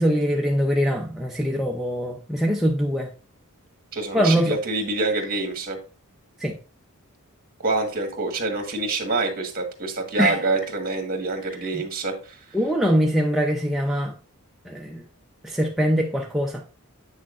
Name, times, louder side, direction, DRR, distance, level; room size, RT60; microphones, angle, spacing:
voice 1, 0.0-3.1 4.1-4.6 6.4-6.6 10.2-10.4 11.7-11.8 12.5-14.1 14.7-15.0 15.4-16.8, equal, ahead, 0.5 m, -23 dB
voice 2, 3.9-5.8 7.6-12.4, right 3 dB, 45° right, 1.6 m, -26 dB
8.2 x 6.2 x 2.5 m
head